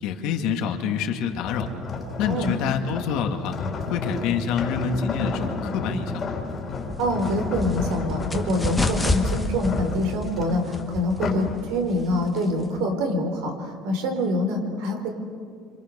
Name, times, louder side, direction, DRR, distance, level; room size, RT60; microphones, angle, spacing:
voice 1, 0.0-1.7 2.2-3.6 3.9-6.3, left 6 dB, 60° left, 4 dB, 2.0 m, -26 dB
sound 1, 1.3-11.6 12.0-12.3, left 4 dB, 25° left, 2.9 m, -32 dB
sound 2, 6.7-12.8, left 2 dB, 5° left, 1.3 m, -30 dB
voice 2, 7.0-15.1, left 1 dB, 75° right, 4 dB, 4.6 m, -25 dB
28.0 x 26.5 x 6.8 m, 2.1 s
cardioid pair, 175°, 0 cm